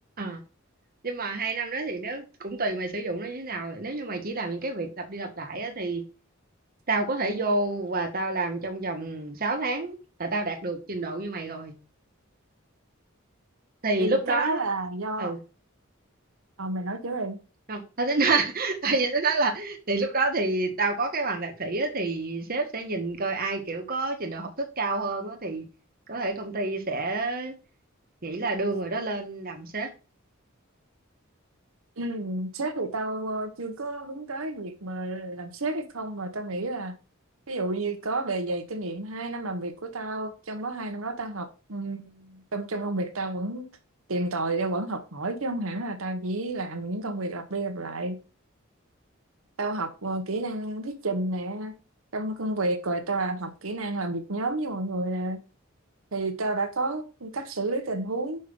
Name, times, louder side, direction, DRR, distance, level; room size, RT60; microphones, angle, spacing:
voice 1, 1.0-6.0 6.9-11.7 13.8-14.6 15.2-15.4 17.7-25.6 26.1-27.5 28.2-29.9, right 3 dB, 45° right, 1.4 m, -28 dB
voice 2, 14.0-15.3 16.6-17.4 32.0-36.9 37.5-43.7 44.1-48.2 49.6-51.7 52.1-55.4 56.1-58.4, right 2 dB, 85° right, 1.2 m, -31 dB
5.5 x 5.4 x 5.4 m
head